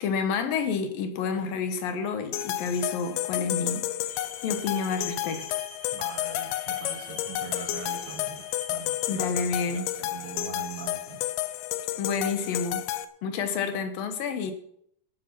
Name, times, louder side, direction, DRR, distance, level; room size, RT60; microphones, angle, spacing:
voice 1, 0.0-3.9 4.1-5.5 9.1-9.8 12.0-12.8 13.2-14.5, left 5 dB, 70° left, 7 dB, 2.8 m, -29 dB
sound 1, 2.3-13.0, left 14 dB, 90° left, 2.7 m, -31 dB
sound 2, 4.1-9.1, equal, 10° left, 5.2 m, -47 dB
voice 2, 5.9-11.2, right 7 dB, 85° right, 5 dB, 3.6 m, -42 dB
12.5 x 10.0 x 5.9 m, 0.69 s
omnidirectional pair, 4.4 m